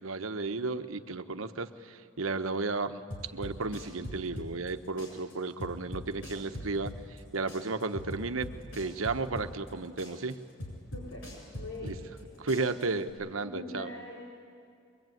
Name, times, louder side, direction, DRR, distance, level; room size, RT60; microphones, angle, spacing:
voice 1, 0.0-3.0 3.3-8.5 8.7-10.4 11.8-12.0 12.4-13.9, right 3 dB, 90° right, 9 dB, 1.1 m, -33 dB
sound 1, 3.1-4.7 5.0-7.2 7.5-9.7 10.0-12.2 12.5-13.1, left 1 dB, 60° left, 7.8 m, -41 dB
voice 2, 10.9-11.3 11.5-12.0 13.4-14.2, left 2 dB, 85° left, -4 dB, 4.6 m, -42 dB
23.5 x 23.0 x 9.3 m, 2.3 s
head